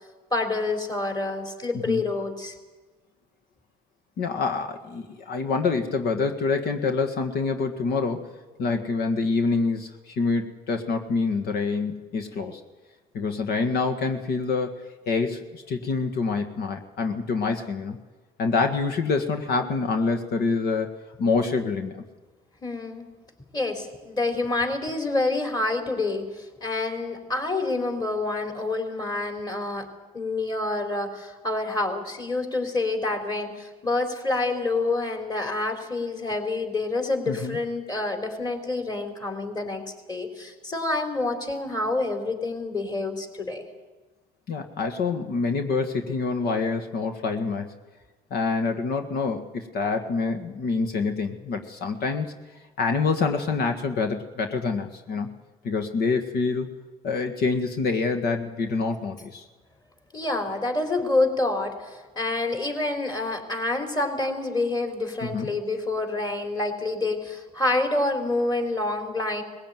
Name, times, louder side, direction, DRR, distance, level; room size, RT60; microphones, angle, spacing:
voice 1, 0.3-2.5 22.6-23.1 23.5-29.9 30.1-39.8 40.1-43.6 60.1-69.4, left 2 dB, 20° left, 5 dB, 3.9 m, -27 dB
voice 2, 4.2-8.3 8.6-12.6 13.1-14.8 15.1-18.0 18.4-22.0 37.3-37.6 44.5-47.7 48.3-52.3 52.8-55.3 55.6-56.7 57.0-59.4 65.2-65.5, left 4 dB, 60° left, 6 dB, 1.8 m, -26 dB
20.0 x 16.0 x 9.1 m, 1.2 s
supercardioid pair, 85°, 18 cm